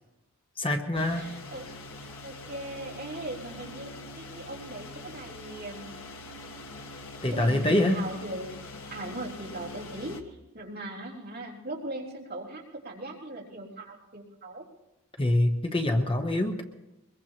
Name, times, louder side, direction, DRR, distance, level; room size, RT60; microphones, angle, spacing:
voice 1, 0.6-1.3 7.2-8.0 15.2-16.6, left 1 dB, 25° left, 5 dB, 0.9 m, -25 dB
sound 1, 0.9-10.2, left 2 dB, 75° left, 1.5 m, -44 dB
voice 2, 1.1-1.7 2.0-6.0 7.3-8.5 8.9-14.6, right 1 dB, 45° right, -4 dB, 3.4 m, -39 dB
23.0 x 21.5 x 2.9 m, 0.94 s
head